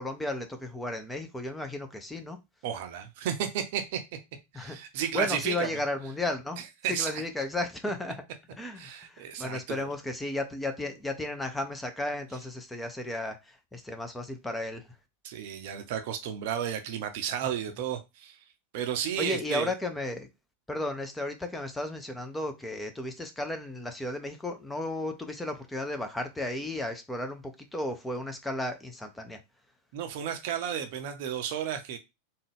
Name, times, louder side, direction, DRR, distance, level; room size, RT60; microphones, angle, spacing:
voice 1, 0.0-2.4 4.5-4.8 5.1-6.6 6.9-8.2 8.6-14.8 19.2-20.3 20.7-29.4, left 1 dB, 5° left, 0.6 m, -34 dB
voice 2, 2.6-4.0 4.5-5.8 6.8-7.2 8.8-9.9 15.2-18.4 18.7-19.7 29.9-32.0, right 9 dB, 50° right, 0.6 m, -33 dB
3.5 x 2.3 x 3.4 m
figure-of-eight pair, 90°, 0 cm